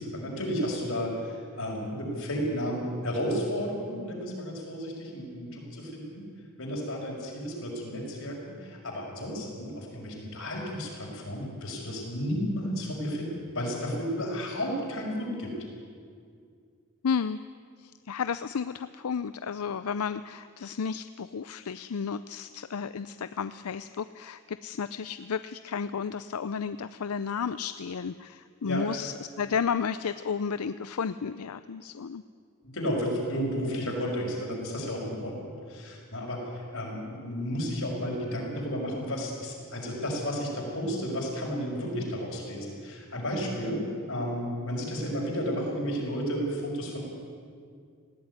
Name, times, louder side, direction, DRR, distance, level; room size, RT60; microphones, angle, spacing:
voice 1, 0.0-6.2 6.6-15.5 28.6-28.8 32.6-43.8 44.1-47.0, equal, 65° left, -1 dB, 5.8 m, -32 dB
voice 2, 17.0-17.4 17.8-32.2, left 6 dB, 85° left, 13 dB, 0.5 m, -32 dB
19.5 x 16.5 x 9.6 m, 2.2 s
head